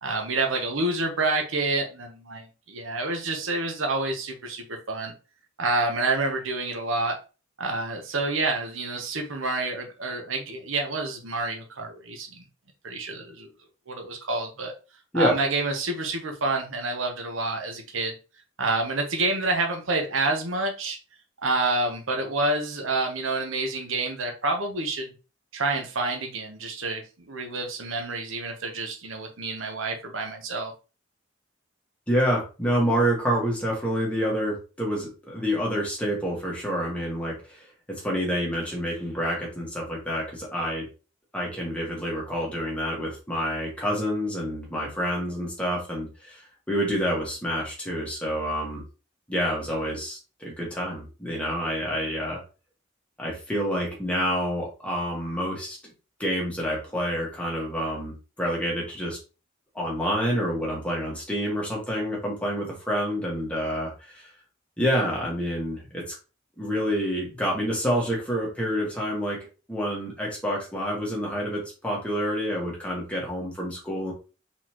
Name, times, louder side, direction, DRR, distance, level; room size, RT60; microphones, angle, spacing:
voice 1, 0.0-5.1 5.6-7.2 7.6-12.4 12.8-13.5 13.9-14.7 15.1-18.1 18.6-21.0 21.4-25.1 25.5-30.7, right 2 dB, 80° right, 4 dB, 1.1 m, -28 dB
voice 2, 32.1-37.7 38.0-40.9 41.3-48.8 49.3-52.4 53.2-55.8 56.2-59.2 59.7-64.2 64.8-66.1 66.6-69.4 69.7-74.1, equal, 5° left, -3 dB, 1.7 m, -28 dB
4.2 x 4.1 x 3.0 m, 0.32 s
head